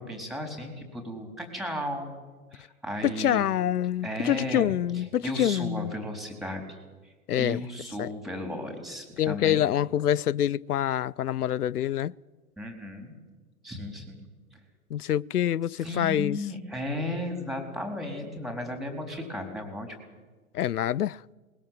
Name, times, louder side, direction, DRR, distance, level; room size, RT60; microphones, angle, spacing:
voice 1, 0.0-2.2 2.5-3.4 4.0-6.6 7.4-9.6 12.6-13.1 13.6-14.2 15.8-20.0, left 1 dB, ahead, 4.0 m, -35 dB
voice 2, 3.0-5.9 7.3-7.7 8.0-8.1 9.2-12.1 14.9-16.5 20.5-21.2, left 11 dB, 80° left, 0.6 m, -26 dB
21.0 x 20.5 x 7.6 m
figure-of-eight pair, 115°, 45 cm